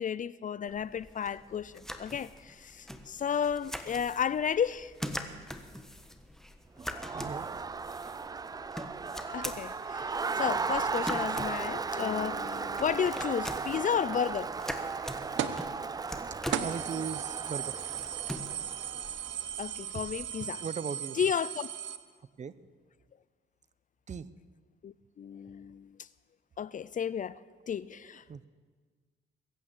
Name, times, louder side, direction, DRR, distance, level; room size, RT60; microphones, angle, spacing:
voice 1, 0.0-4.9 9.3-14.5 19.6-20.6 21.2-21.7 24.8-25.9 26.6-27.3 27.7-28.5, left 8 dB, 40° left, 0.5 m, -33 dB
sound 1, 0.7-20.3, equal, ahead, 1.3 m, -44 dB
Crowd, 6.8-19.3, right 4 dB, 20° right, 0.4 m, -36 dB
voice 2, 7.1-7.5 16.6-17.8 19.9-20.1 20.4-21.2 22.4-22.5 24.1-24.3 27.9-28.5, right 6 dB, 35° right, 0.8 m, -39 dB
sound 2, 15.4-15.7 16.1-16.2 16.5-22.0, right 10 dB, 75° right, 1.0 m, -37 dB
22.0 x 8.9 x 7.4 m
cardioid pair, 90°, 20 cm